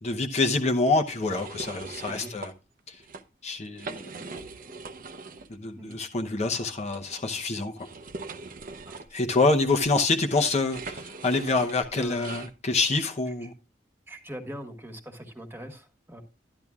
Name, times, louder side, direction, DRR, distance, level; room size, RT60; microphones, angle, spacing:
voice 1, 0.0-2.5 2.9-3.0 3.4-4.4 5.5-7.9 9.1-13.5, left 3 dB, 40° left, 0.8 m, -26 dB
sound 1, 1.1-2.5 2.9-3.2 3.6-5.5 5.9-6.0 6.9-12.5, right 3 dB, 50° right, 0.7 m, -41 dB
voice 2, 11.8-12.3 14.1-16.2, equal, 10° right, 1.5 m, -41 dB
12.5 x 9.9 x 2.4 m
head